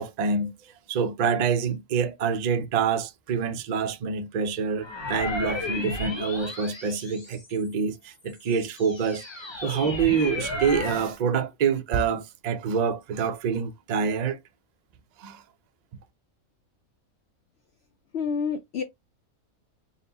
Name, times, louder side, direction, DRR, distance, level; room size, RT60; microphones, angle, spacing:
voice 1, 0.0-9.2 9.6-14.4 15.2-15.4, right 6 dB, 75° right, 0.4 m, -26 dB
sound 1, 4.8-7.7 8.3-11.2, left 2 dB, 25° left, 0.7 m, -34 dB
voice 2, 18.1-18.8, left 6 dB, 65° left, 0.7 m, -28 dB
4.0 x 2.2 x 3.9 m
omnidirectional pair, 1.5 m